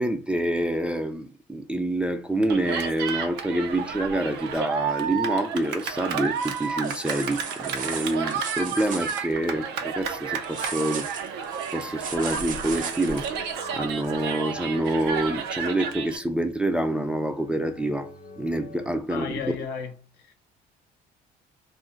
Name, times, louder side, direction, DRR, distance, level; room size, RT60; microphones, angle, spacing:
voice 1, 0.0-11.1 11.7-13.3 13.7-19.6, right 1 dB, 5° right, 0.3 m, -27 dB
Cheering, 2.5-16.2, right 6 dB, 90° right, 0.5 m, -31 dB
sound 1, 5.7-5.9 6.2-9.2 10.4-13.3 14.0-14.1, right 6 dB, 50° right, 0.7 m, -36 dB
sound 2, 12.6-19.0, left 4 dB, 40° left, 0.5 m, -46 dB
voice 2, 19.1-20.3, left 6 dB, 80° left, 0.7 m, -34 dB
2.4 x 2.1 x 3.8 m
cardioid pair, 110°, 17 cm